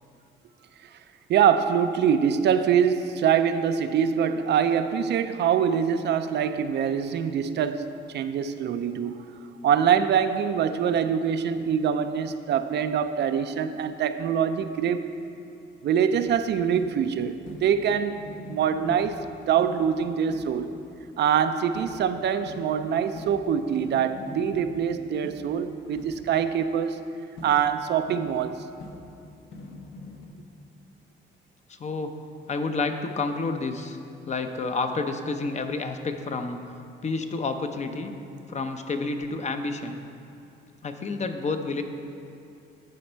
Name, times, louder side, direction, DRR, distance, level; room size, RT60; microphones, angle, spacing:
voice 1, 1.3-7.9 8.1-9.2 9.6-15.0 15.8-18.2 18.5-20.7 21.2-27.0 27.4-28.6, right 8 dB, 60° right, 10 dB, 0.4 m, -24 dB
sound 1, 16.1-21.0 21.7-26.6 27.4-30.3, left 2 dB, 70° left, 1.0 m, -44 dB
voice 2, 31.8-32.1 32.5-34.0 34.3-36.6 37.0-38.1 38.5-40.0 40.8-41.8, left 3 dB, 35° left, 6 dB, 0.6 m, -29 dB
12.0 x 4.3 x 4.4 m, 2.6 s
cardioid pair, 90°, 20 cm